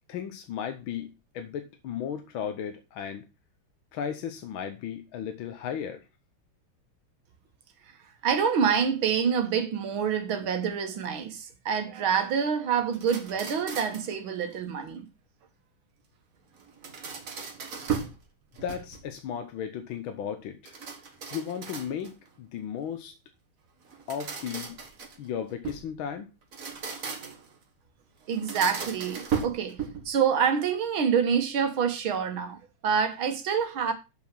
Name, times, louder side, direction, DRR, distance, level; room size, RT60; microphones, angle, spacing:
voice 1, 0.1-3.3 3.9-6.1 18.6-20.8 21.3-23.2 24.1-24.7 25.2-26.3, left 8 dB, 75° left, 1.6 m, -35 dB
voice 2, 8.2-15.1 17.3-17.4 28.3-33.9, right 7 dB, 75° right, 2.2 m, -27 dB
sound 1, 12.9-14.2 16.6-18.2 18.6-19.2 20.6-22.3 23.9-25.9 26.4-27.5 28.3-30.2, right 6 dB, 45° right, 1.6 m, -36 dB
7.4 x 5.9 x 6.0 m
omnidirectional pair, 2.3 m